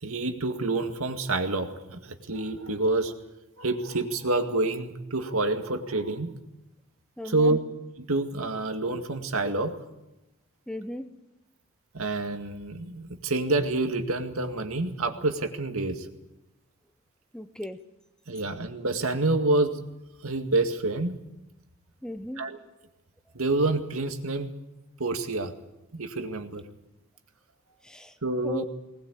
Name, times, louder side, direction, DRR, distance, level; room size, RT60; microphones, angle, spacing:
voice 1, 0.0-3.1 3.6-6.3 7.2-7.6 8.0-9.8 11.9-16.1 18.3-19.8 20.2-21.2 22.4-22.6 23.3-24.5 25.0-25.5 25.9-26.6 28.2-28.6, right 2 dB, 75° right, 6 dB, 2.1 m, -27 dB
voice 2, 7.2-7.6 10.7-11.1 17.3-17.8 22.0-22.4 27.8-28.1 28.4-28.6, left 1 dB, 5° left, 10 dB, 0.8 m, -36 dB
20.0 x 20.0 x 8.4 m, 0.93 s
head